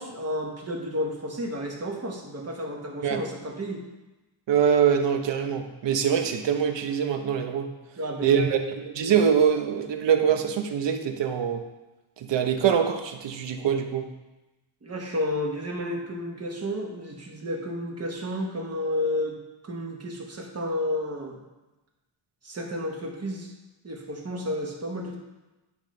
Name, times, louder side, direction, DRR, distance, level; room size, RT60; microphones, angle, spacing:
voice 1, 0.0-3.8 8.0-8.7 14.8-19.4 19.6-21.4 22.4-23.5 23.8-25.2, left 1 dB, 35° right, 1 dB, 1.2 m, -31 dB
voice 2, 4.5-7.7 8.2-11.7 12.2-14.1, right 8 dB, 70° right, 6 dB, 0.9 m, -24 dB
9.9 x 5.1 x 3.2 m, 1.0 s
wide cardioid pair, 135°, 45 cm